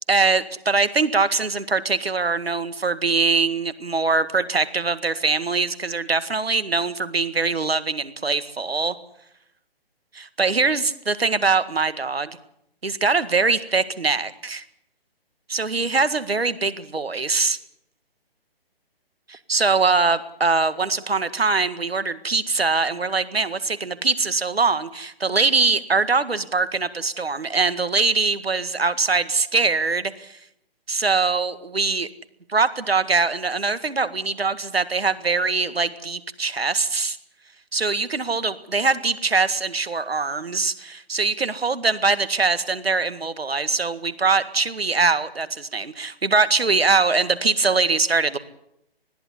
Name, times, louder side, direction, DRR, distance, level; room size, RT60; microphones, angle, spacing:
voice 1, 0.1-9.0 10.1-12.4 12.8-14.6 15.5-17.6 19.3-30.4 30.9-32.1 32.5-37.2 37.7-48.4, right 4 dB, 75° right, 13 dB, 1.9 m, -22 dB
20.5 x 15.0 x 9.8 m, 0.76 s
figure-of-eight pair, 140°, 30 cm